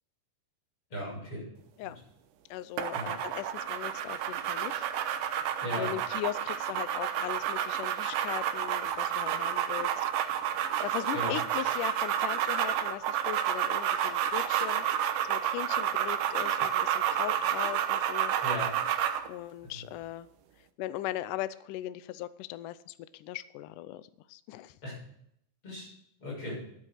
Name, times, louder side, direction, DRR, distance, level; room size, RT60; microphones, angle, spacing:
voice 1, 0.9-1.4 1.8-1.9 2.9-3.1 5.6-5.9 11.1-11.4 18.4-18.7 24.8-24.9 25.6-25.9 26.2-26.5, left 1 dB, 35° left, -5 dB, 8.0 m, -36 dB
voice 2, 2.5-4.9 5.7-10.1 10.8-18.3 19.3-20.3 20.8-24.7, left 14 dB, 85° left, 14 dB, 1.8 m, -39 dB
sound 1, 2.8-19.3, right 10 dB, 80° right, 2.8 m, -30 dB
12.0 x 9.7 x 6.4 m, 0.73 s
omnidirectional pair, 4.5 m